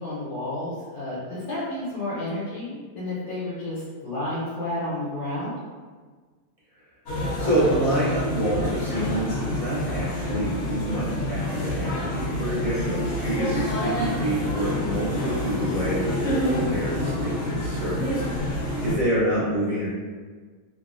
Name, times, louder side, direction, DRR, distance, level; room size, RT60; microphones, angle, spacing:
voice 1, 0.0-5.5 12.8-13.0 18.8-19.0, left 1 dB, 80° left, -9 dB, 1.4 m, -31 dB
sound 1, 7.1-18.9, left 1 dB, 55° left, 0.8 m, -28 dB
voice 2, 7.4-18.2 18.8-19.9, right 1 dB, 30° right, -11 dB, 0.7 m, -27 dB
3.0 x 2.5 x 2.4 m, 1.5 s
omnidirectional pair, 1.7 m